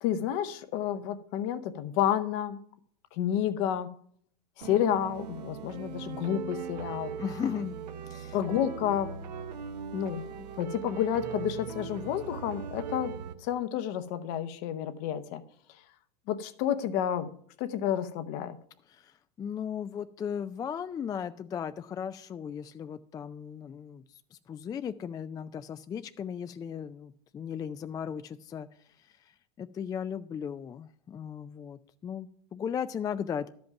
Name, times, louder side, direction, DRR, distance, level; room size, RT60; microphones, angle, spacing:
voice 1, 0.0-2.6 3.1-3.9 4.6-7.1 8.3-9.1 9.9-10.3 10.6-13.1 13.4-15.4 16.3-17.3 17.6-18.6, left 10 dB, 55° left, 0.9 m, -30 dB
sound 1, 4.6-13.4, right 7 dB, 80° right, 0.9 m, -40 dB
voice 2, 7.2-7.8 8.0-8.4 18.9-24.0 24.3-28.7 29.0-33.5, left 8 dB, 20° left, 0.3 m, -36 dB
12.0 x 5.3 x 5.8 m
hypercardioid pair, 100°, 21 cm